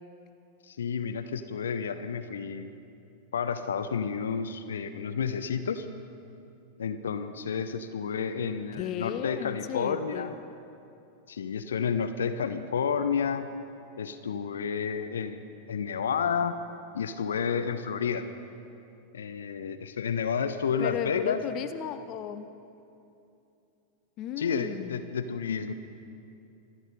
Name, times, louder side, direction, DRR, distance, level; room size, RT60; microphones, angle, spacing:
voice 1, 0.6-2.7 3.3-5.9 6.8-10.3 11.3-13.5 14.0-16.5 16.9-18.3 19.1-21.4 24.4-25.7, left 6 dB, 65° left, 9 dB, 0.7 m, -30 dB
voice 2, 8.8-10.3 20.8-22.5 24.2-25.0, left 10 dB, 35° left, 10 dB, 0.7 m, -35 dB
25.5 x 9.6 x 5.3 m, 2.7 s
figure-of-eight pair, 90°, 0 cm